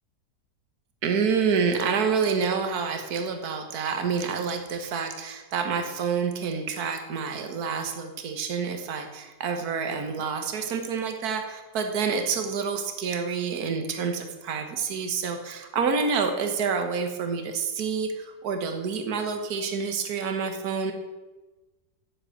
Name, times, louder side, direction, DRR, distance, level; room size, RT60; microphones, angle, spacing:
voice 1, 1.0-20.9, right 5 dB, 60° right, 5 dB, 1.8 m, -28 dB
8.9 x 8.0 x 9.0 m, 1.2 s
omnidirectional pair, 1.9 m